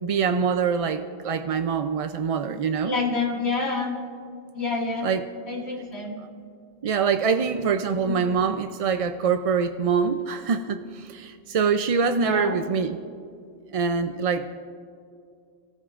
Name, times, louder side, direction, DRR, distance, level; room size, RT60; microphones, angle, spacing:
voice 1, 0.0-3.0 5.0-5.2 6.8-13.0 13.7-14.5, right 6 dB, 55° right, 8 dB, 0.4 m, -24 dB
voice 2, 2.8-4.0 4.5-5.1 5.5-6.2 8.0-8.2 12.1-12.5, left 3 dB, 75° left, -3 dB, 2.4 m, -27 dB
26.0 x 14.5 x 2.4 m, 2.3 s
omnidirectional pair, 1.1 m